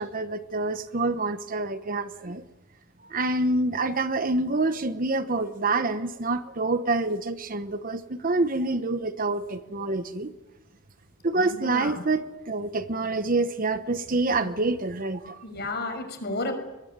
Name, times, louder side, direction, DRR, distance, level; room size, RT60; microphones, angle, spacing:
voice 1, 0.0-2.4 3.1-10.3 11.2-15.4, right 2 dB, 40° right, 1.0 m, -27 dB
voice 2, 11.4-12.0 14.3-14.6 15.4-16.5, left 2 dB, 50° left, 6.1 m, -33 dB
23.0 x 20.5 x 9.4 m
head